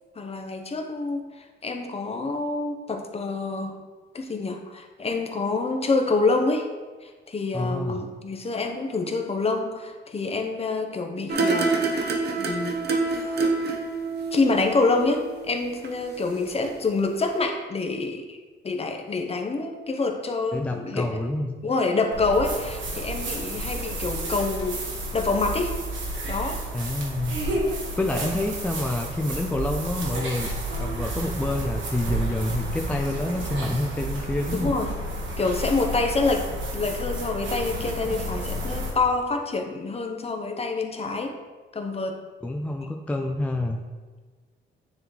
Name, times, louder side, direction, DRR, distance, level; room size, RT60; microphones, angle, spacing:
voice 1, 0.2-3.8 4.1-6.7 7.0-11.8 12.4-12.8 13.2-13.5 14.3-18.4 18.6-21.1 21.6-24.8 25.1-25.7 26.2-26.6 34.5-34.9 35.4-41.4 41.7-42.2, left 3 dB, 30° left, 4 dB, 0.8 m, -27 dB
voice 2, 7.5-8.0 20.5-21.5 26.7-27.4 27.7-30.5 30.8-34.7 42.4-43.8, left 1 dB, 5° left, 2 dB, 0.5 m, -28 dB
sound 1, 11.3-16.4 16.6-16.7, right 3 dB, 55° right, 0.9 m, -27 dB
sound 2, 22.1-38.9, right 1 dB, 70° right, 1.5 m, -31 dB
9.5 x 3.2 x 3.8 m, 1.4 s
cardioid pair, 90°, 20 cm